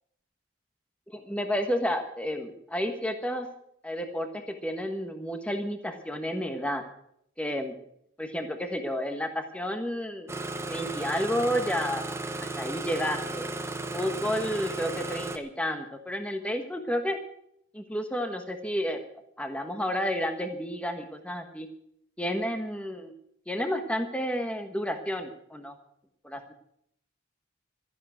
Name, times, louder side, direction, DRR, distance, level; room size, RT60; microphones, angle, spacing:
voice 1, 1.1-3.5 3.8-6.8 7.4-7.7 8.2-10.3 10.7-12.0 12.4-13.5 13.9-17.2 17.7-19.0 19.4-21.7 22.2-23.1 23.5-25.7 26.2-26.5, equal, 5° left, 6 dB, 1.3 m, -31 dB
Engine starting, 10.3-15.4, right 2 dB, 15° right, 0.9 m, -35 dB
13.5 x 11.0 x 7.8 m, 0.72 s
head